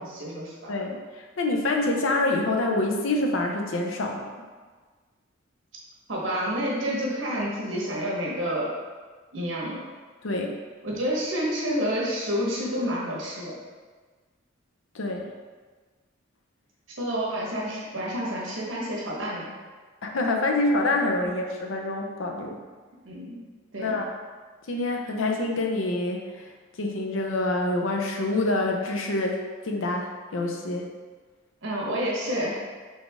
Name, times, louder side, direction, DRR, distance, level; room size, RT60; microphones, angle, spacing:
voice 1, 0.0-0.7 6.1-8.7 9.3-9.8 10.8-13.6 17.0-19.5 21.2-21.3 23.0-23.4 23.7-24.0 31.6-32.6, equal, 70° right, -4 dB, 1.2 m, -29 dB
voice 2, 0.7-4.3 10.2-10.6 14.9-15.3 20.0-22.6 23.8-24.1 24.7-26.5 26.8-30.9, left 2 dB, 80° left, 2 dB, 0.6 m, -26 dB
4.2 x 3.5 x 3.4 m, 1.4 s
head